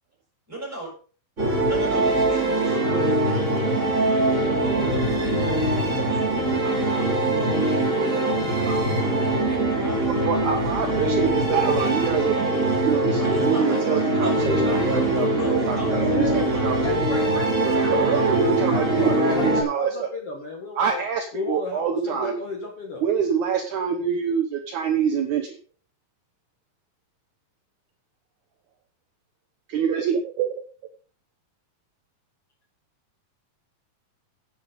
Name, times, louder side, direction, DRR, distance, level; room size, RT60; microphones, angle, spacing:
voice 1, 0.5-0.9 1.7-5.4 5.8-10.5 10.7-10.9 11.2-11.3 11.6-12.6 13.2-16.2 16.5-16.6, right 1 dB, 5° right, 0 dB, 6.0 m, -37 dB
sound 1, 1.4-19.6, right 2 dB, 20° right, 3.4 m, -22 dB
voice 2, 10.3-12.4 12.8-17.0 17.7-20.1 20.8-22.3 23.0-25.6 29.7-30.5, right 7 dB, 65° right, 5 dB, 2.3 m, -25 dB
voice 3, 15.9-21.0 21.3-23.0, left 3 dB, 45° left, 1 dB, 2.5 m, -33 dB
10.5 x 8.9 x 5.3 m, 0.39 s
omnidirectional pair, 4.1 m